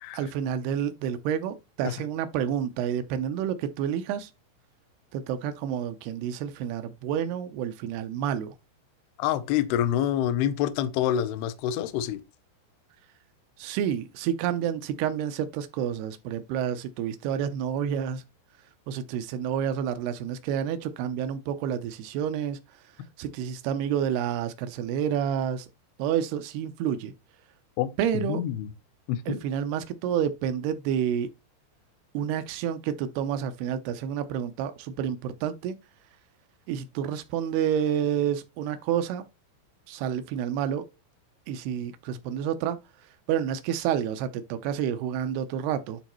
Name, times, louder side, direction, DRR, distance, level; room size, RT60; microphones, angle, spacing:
voice 1, 0.1-4.3 5.1-8.6 13.6-18.2 18.9-22.6 23.2-25.7 26.0-27.1 28.0-28.4 29.3-31.3 32.1-35.8 36.7-39.2 39.9-40.9 41.5-42.8 43.3-46.0, right 9 dB, 85° right, 2.3 m, -29 dB
voice 2, 9.2-12.2 27.8-28.7 29.1-29.4, left 11 dB, 80° left, 2.3 m, -27 dB
11.5 x 4.0 x 3.0 m
omnidirectional pair, 5.4 m